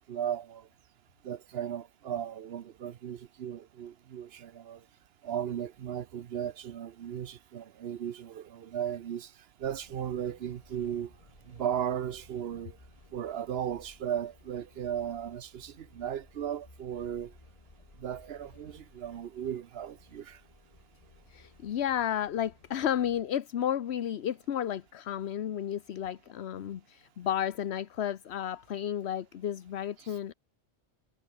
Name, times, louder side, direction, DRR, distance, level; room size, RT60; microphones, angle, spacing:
voice 1, 0.1-0.7 1.2-4.8 5.2-9.3 9.6-11.1 11.5-12.8 13.1-17.3 18.0-20.4 30.0-30.1, right 9 dB, 65° right, 1.0 m, -36 dB
sound 1, 9.6-23.2, left 2 dB, 35° left, 2.4 m, -58 dB
voice 2, 21.3-30.3, left 10 dB, 75° left, 1.1 m, -32 dB
omnidirectional pair, 1.1 m